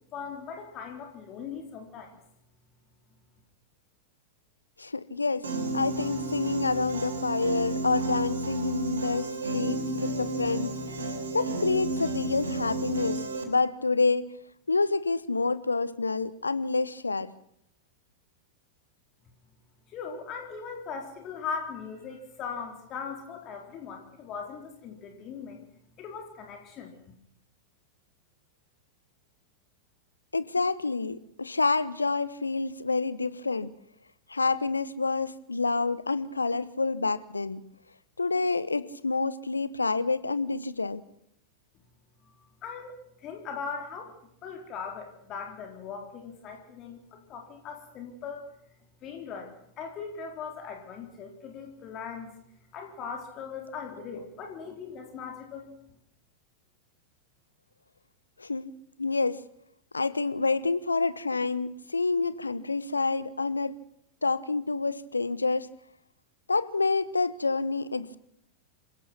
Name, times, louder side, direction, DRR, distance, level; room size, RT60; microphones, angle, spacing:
voice 1, 0.1-2.2 19.9-25.6 26.0-26.9 42.2-42.3 42.6-44.1 44.4-48.4 49.0-52.3 52.7-55.7, left 6 dB, 35° left, 3 dB, 4.1 m, -39 dB
voice 2, 4.8-5.5 5.7-10.8 11.3-14.4 14.7-17.3 30.3-33.7 34.3-37.6 38.2-41.0 58.4-58.7 59.0-59.4 59.9-63.8 64.2-65.7 66.5-68.2, left 3 dB, 80° left, 16 dB, 1.1 m, -28 dB
Piano, 5.4-13.4, right 2 dB, 70° right, 3.3 m, -32 dB
27.0 x 17.0 x 6.0 m, 0.73 s
figure-of-eight pair, 90°, 0 cm